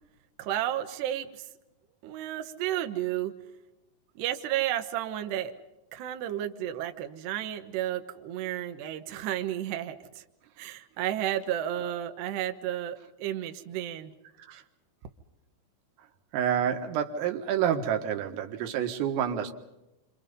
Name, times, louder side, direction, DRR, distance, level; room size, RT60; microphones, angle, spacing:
voice 1, 0.4-1.5 2.0-3.3 4.2-5.5 5.9-10.2 10.6-14.1, right 12 dB, 70° right, 3.0 m, -32 dB
voice 2, 16.3-19.5, right 9 dB, 90° right, 4.2 m, -28 dB
28.5 x 26.5 x 5.4 m
omnidirectional pair, 5.7 m